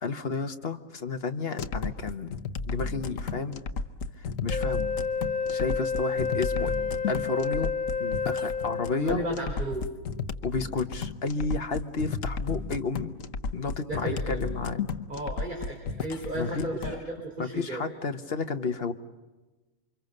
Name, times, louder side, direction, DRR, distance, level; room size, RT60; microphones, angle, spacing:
voice 1, 0.0-2.4 2.7-3.6 4.2-4.9 5.5-6.8 7.1-7.7 8.0-9.2 10.4-13.2 13.5-14.9 16.4-16.6 17.4-18.9, left 4 dB, 45° left, 7 dB, 1.4 m, -31 dB
sound 1, 1.6-17.0, left 4 dB, 65° left, 1.4 m, -34 dB
Wind instrument woodwind instrument, 4.5-9.2, left 5 dB, 10° left, 0.5 m, -30 dB
voice 2, 8.9-9.9 13.8-14.4 15.1-17.8, right 1 dB, 35° right, 0 dB, 3.8 m, -34 dB
29.0 x 25.0 x 6.7 m, 1.2 s
omnidirectional pair, 1.5 m